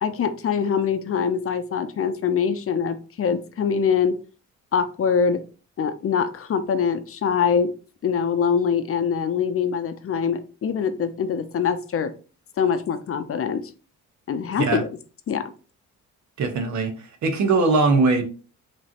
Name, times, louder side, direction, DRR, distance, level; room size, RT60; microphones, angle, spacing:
voice 1, 0.0-4.2 4.7-5.4 5.8-7.7 8.0-12.1 12.6-13.7 14.3-14.9 15.3-15.5, left 6 dB, 45° left, 10 dB, 0.7 m, -23 dB
voice 2, 16.4-16.9 17.2-18.2, right 3 dB, 70° right, 5 dB, 1.3 m, -20 dB
5.3 x 3.0 x 2.9 m, 0.36 s
cardioid pair, 90°, 30 cm